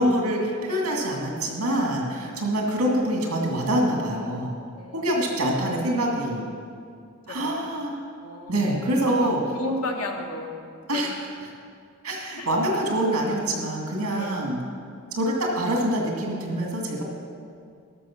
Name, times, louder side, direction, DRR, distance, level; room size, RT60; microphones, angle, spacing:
voice 1, 0.0-4.6 4.9-6.5 7.3-8.1 8.5-9.4 10.9-11.1 12.0-14.6 15.2-17.0, right 1 dB, 75° right, 0 dB, 2.1 m, -25 dB
voice 2, 8.2-8.6 9.0-10.5 10.9-11.1 12.4-12.5 14.1-14.4, left 2 dB, 80° left, 3 dB, 1.2 m, -32 dB
12.5 x 6.4 x 5.9 m, 2.3 s
head